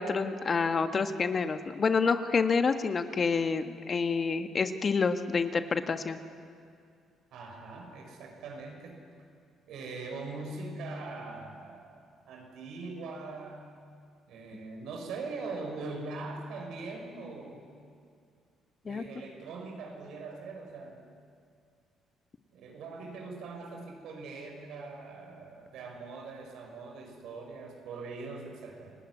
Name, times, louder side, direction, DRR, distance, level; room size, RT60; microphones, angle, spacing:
voice 1, 0.0-6.2 18.8-19.0, left 5 dB, 40° left, 8 dB, 1.6 m, -28 dB
voice 2, 7.3-9.0 9.7-13.7 14.3-17.7 18.8-21.0 22.5-28.9, right 3 dB, 75° right, 2 dB, 6.0 m, -42 dB
29.0 x 18.0 x 9.8 m, 2.4 s
cardioid pair, 80°, 0 cm